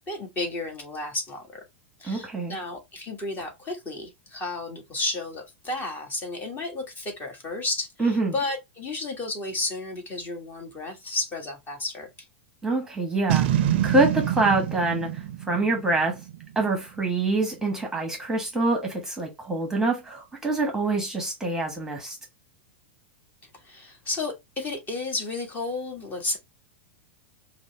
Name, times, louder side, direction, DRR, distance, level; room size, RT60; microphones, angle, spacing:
voice 1, 0.0-1.6 2.0-12.1 23.6-26.4, left 2 dB, 30° left, 1.5 m, -32 dB
voice 2, 2.0-2.6 8.0-8.3 12.6-13.5 13.8-16.2 16.5-22.2, right 2 dB, 5° right, 1.1 m, -25 dB
Boom, 13.3-16.6, right 12 dB, 60° right, 0.5 m, -26 dB
5.0 x 2.1 x 3.1 m
hypercardioid pair, 105°, 6 cm